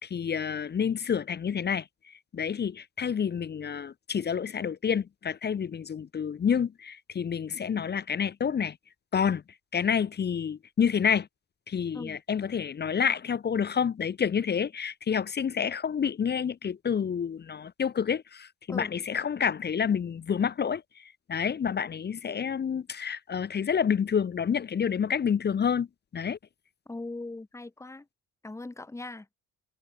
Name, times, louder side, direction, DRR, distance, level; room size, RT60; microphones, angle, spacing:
voice 1, 0.0-8.8 9.1-9.4 9.7-11.3 11.7-25.9 26.1-26.4, left 7 dB, 25° left, 0.9 m, -29 dB
voice 2, 26.9-28.0 28.4-29.3, left 2 dB, 5° left, 1.5 m, -39 dB
cardioid pair, 135°, 40 cm